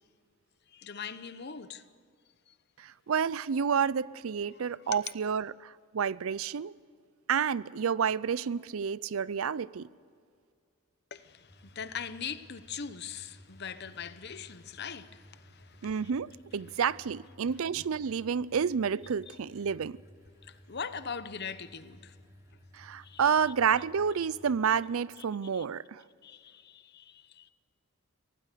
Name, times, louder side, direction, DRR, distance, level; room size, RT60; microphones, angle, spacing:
voice 1, 0.7-1.8 2.5-2.6 5.1-5.2 11.1-16.1 19.3-19.4 20.4-22.1 23.0-23.3 24.6-24.7 25.5-25.6 26.2-27.5, left 6 dB, 50° left, 0.9 m, -41 dB
voice 2, 2.8-6.7 7.3-9.9 15.8-20.0 22.7-26.0, right 7 dB, 70° right, 0.5 m, -30 dB
sound 1, 11.5-24.8, equal, 15° right, 3.0 m, -57 dB
24.0 x 18.0 x 6.8 m
head